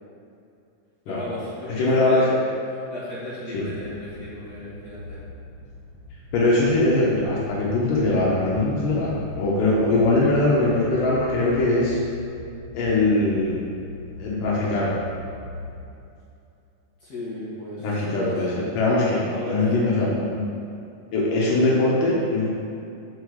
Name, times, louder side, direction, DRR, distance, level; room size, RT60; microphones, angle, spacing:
voice 1, 1.1-2.4 2.7-5.2 9.7-10.0 17.0-18.6 19.3-19.7, left 1 dB, 45° left, -9 dB, 1.4 m, -35 dB
voice 2, 1.7-2.3 3.5-3.7 6.3-12.0 12.7-13.6 14.2-14.9 17.8-20.4 21.1-22.5, left 2 dB, 85° left, -6 dB, 2.7 m, -21 dB
sound 1, 3.5-15.8, left 2 dB, 40° right, 2.1 m, -40 dB
6.7 x 4.6 x 6.3 m, 2.6 s
omnidirectional pair, 3.7 m